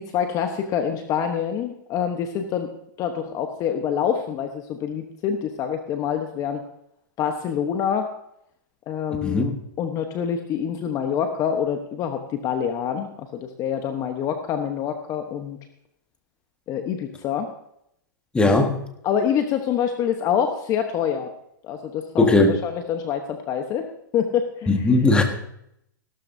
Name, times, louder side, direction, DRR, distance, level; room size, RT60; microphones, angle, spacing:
voice 1, 0.0-2.7 3.0-6.6 7.2-8.1 8.9-15.6 16.7-17.5 19.0-21.3 21.6-23.9 24.1-24.9, left 8 dB, 30° left, 6 dB, 1.0 m, -26 dB
voice 2, 18.3-18.9 22.2-22.6 24.7-25.2, left 2 dB, 10° left, 4 dB, 1.6 m, -18 dB
17.0 x 12.5 x 2.7 m, 0.75 s
hypercardioid pair, 130°, 11 cm